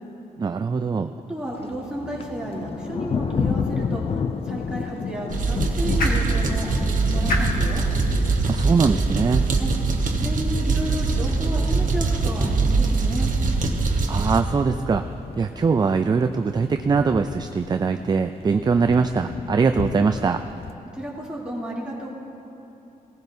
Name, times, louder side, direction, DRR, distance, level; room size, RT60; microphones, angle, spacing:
voice 1, 0.4-1.1 8.5-9.4 14.1-20.4, right 5 dB, 25° right, 7 dB, 0.4 m, -22 dB
voice 2, 1.3-4.2 4.4-7.8 9.6-9.8 10.1-13.3 20.9-22.1, right 1 dB, 5° right, -6 dB, 2.8 m, -32 dB
Thunder, 1.5-20.7, left 6 dB, 40° left, 0.4 m, -33 dB
sound 1, 4.2-10.4, left 2 dB, 75° left, 1.6 m, -34 dB
sound 2, 5.3-14.4, right 3 dB, 60° right, 1.2 m, -22 dB
17.5 x 14.5 x 2.7 m, 3.0 s
cardioid pair, 100°, 15 cm